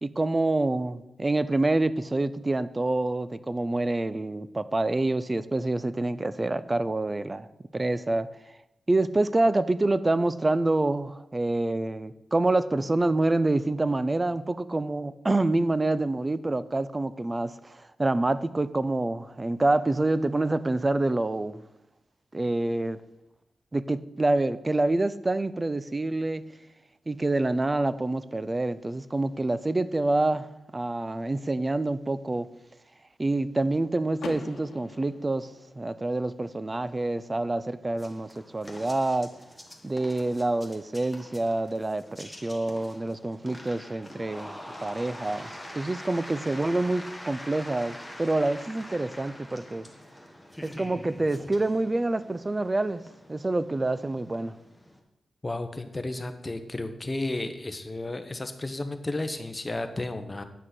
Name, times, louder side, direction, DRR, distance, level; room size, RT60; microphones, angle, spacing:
voice 1, 0.0-7.5 7.7-8.3 8.9-21.6 22.3-23.0 23.7-26.4 27.1-32.5 33.2-35.5 35.8-39.3 39.8-49.9 50.6-53.0 53.3-54.5, right 2 dB, 25° right, 15 dB, 0.5 m, -27 dB
Car / Door, 34.2-36.1, left 4 dB, 85° left, 1.0 m, -42 dB
sound 1, 38.0-55.0, equal, ahead, 1.6 m, -45 dB
voice 2, 55.4-60.4, left 2 dB, 25° left, 8 dB, 1.0 m, -33 dB
9.5 x 6.2 x 6.0 m, 0.91 s
cardioid pair, 85°, 0 cm